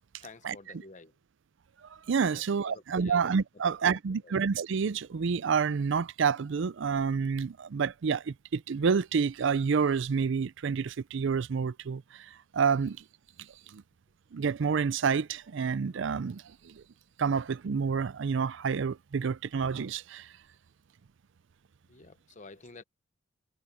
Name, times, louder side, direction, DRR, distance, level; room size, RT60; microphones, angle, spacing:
voice 1, 0.2-1.1 2.2-3.3 3.6-4.4 21.9-22.8, left 3 dB, 40° left, 0.9 m, -51 dB
voice 2, 2.1-12.3 12.5-13.0 13.7-13.8 14.3-16.8 17.2-20.3, right 6 dB, 65° right, 0.5 m, -28 dB
head